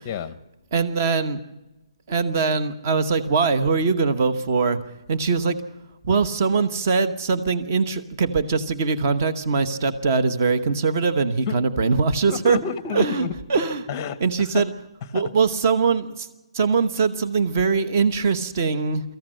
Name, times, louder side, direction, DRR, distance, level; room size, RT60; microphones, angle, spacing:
voice 1, 0.0-0.4 11.5-11.6 12.3-13.4 13.9-14.8 15.0-15.3, left 7 dB, 15° left, 15 dB, 0.8 m, -30 dB
voice 2, 0.7-1.4 2.1-4.8 5.1-5.6 6.0-12.6 12.9-13.9 14.2-14.7 15.1-16.3 16.5-19.0, right 4 dB, 25° right, 10 dB, 1.0 m, -22 dB
24.0 x 14.5 x 7.7 m, 1.0 s
hypercardioid pair, 180°, 3 cm